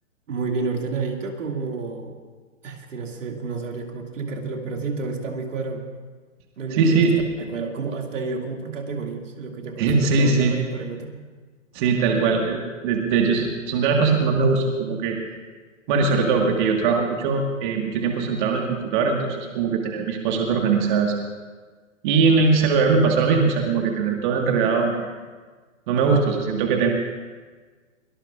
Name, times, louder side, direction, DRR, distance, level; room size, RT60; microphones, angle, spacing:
voice 1, 0.3-2.1 2.6-5.8 6.6-7.1 7.4-11.2, right 4 dB, 65° right, 2 dB, 2.3 m, -30 dB
voice 2, 6.7-7.2 9.8-10.5 11.7-15.2 15.9-21.2 22.0-25.1 25.9-26.9, right 4 dB, 35° right, 2 dB, 1.6 m, -21 dB
23.0 x 18.5 x 2.5 m, 1.4 s
hypercardioid pair, 130°, 40 cm